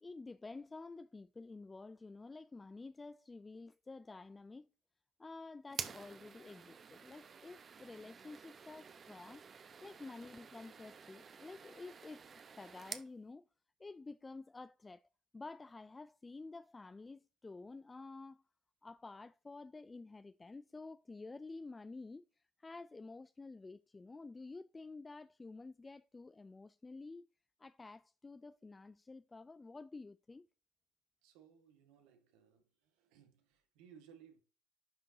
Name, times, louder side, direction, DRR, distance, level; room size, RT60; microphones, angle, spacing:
voice 1, 0.0-4.7 5.2-9.5 9.8-13.4 13.8-15.1 15.3-18.4 18.8-27.3 27.6-30.5, left 3 dB, 20° left, 0.3 m, -51 dB
sound 1, 5.7-13.1, right 6 dB, 40° right, 0.9 m, -50 dB
voice 2, 31.2-34.4, right 8 dB, 80° right, 1.7 m, -62 dB
11.0 x 3.7 x 2.8 m
supercardioid pair, 75°, 0 cm